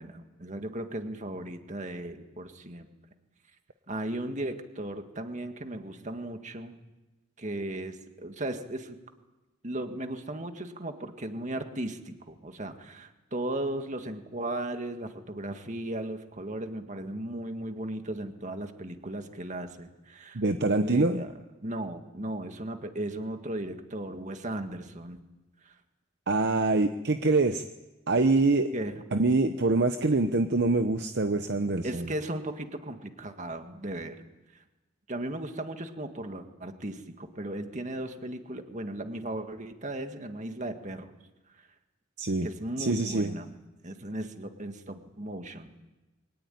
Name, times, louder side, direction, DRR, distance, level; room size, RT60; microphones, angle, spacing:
voice 1, 0.0-2.9 3.9-6.7 7.4-9.0 9.6-21.3 21.6-25.2 25.6-25.7 28.7-29.0 31.8-34.2 34.6-34.7 35.1-41.1 41.6-41.7 42.4-43.6 43.8-45.7, right 1 dB, 35° right, 6 dB, 1.9 m, -36 dB
voice 2, 20.3-21.2 26.3-27.6 28.1-28.7 29.1-32.1 42.2-42.5 42.8-43.3, right 3 dB, 55° right, 8 dB, 0.8 m, -25 dB
23.0 x 18.5 x 9.3 m, 1.1 s
head